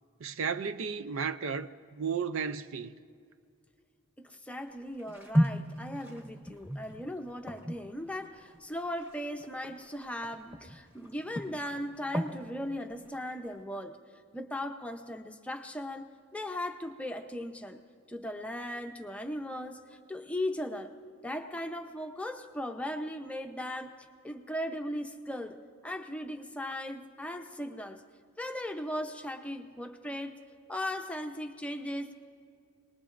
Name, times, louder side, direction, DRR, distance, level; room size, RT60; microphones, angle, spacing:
voice 1, 0.2-2.9, right 6 dB, 60° right, 0.4 m, -34 dB
voice 2, 4.2-14.0 14.3-17.8 18.1-20.9 21.2-23.9 24.2-25.6 25.8-28.0 28.4-30.4 30.7-32.1, left 1 dB, 5° left, 0.6 m, -38 dB
sound 1, 4.7-10.8 11.0-12.4 12.8-13.6, equal, 10° right, 1.2 m, -34 dB
27.0 x 20.0 x 2.5 m
head